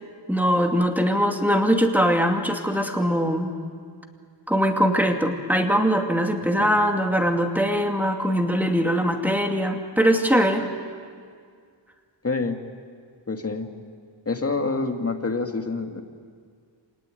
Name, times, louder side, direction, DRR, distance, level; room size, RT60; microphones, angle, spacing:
voice 1, 0.3-3.5 4.5-10.7, equal, 5° right, 3 dB, 2.4 m, -21 dB
voice 2, 12.2-12.6 13.3-13.7 14.3-16.0, left 3 dB, 30° left, 5 dB, 2.1 m, -27 dB
26.5 x 19.0 x 9.2 m, 2.1 s
wide cardioid pair, 85°, 45 cm